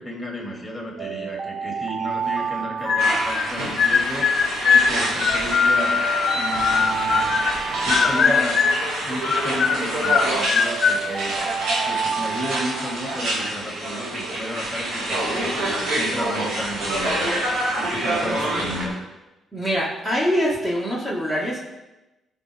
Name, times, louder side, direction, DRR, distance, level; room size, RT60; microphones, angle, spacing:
voice 1, 0.0-4.3 4.7-6.0 6.3-7.3 7.8-8.6 9.0-11.4 11.9-17.3 17.8-19.0, equal, 15° left, -1 dB, 2.5 m, -32 dB
sound 1, 1.0-4.2 5.3-9.0 10.2-13.4, right 6 dB, 50° right, 0.5 m, -30 dB
sound 2, 2.9-3.5 3.8-7.6 7.9-8.9 9.2-11.0, left 6 dB, 50° left, 0.8 m, -21 dB
sound 3, 3.0-18.9, right 1 dB, 75° right, 2.8 m, -27 dB
voice 2, 18.2-18.6 19.5-21.6, equal, 15° right, -4 dB, 2.0 m, -24 dB
13.5 x 5.2 x 3.6 m, 1.0 s
cardioid pair, 90°, 0 cm